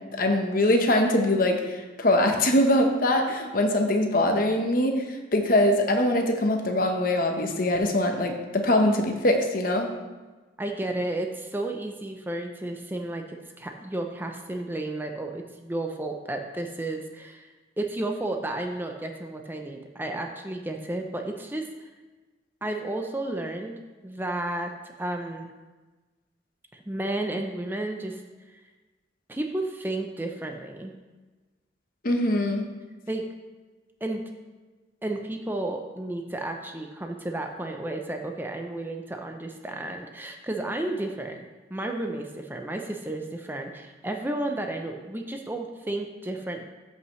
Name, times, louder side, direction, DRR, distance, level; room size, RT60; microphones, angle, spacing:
voice 1, 0.1-5.1 5.3-9.9 32.0-32.6, left 1 dB, 50° left, 4 dB, 1.0 m, -23 dB
voice 2, 10.6-21.9 22.6-24.7 25.0-25.5 26.7-28.2 28.5-28.6 29.3-30.9 33.1-33.2 34.0-34.2 35.0-41.5 41.7-46.6, right 1 dB, 10° right, 4 dB, 0.5 m, -32 dB
13.5 x 5.6 x 3.1 m, 1.3 s
head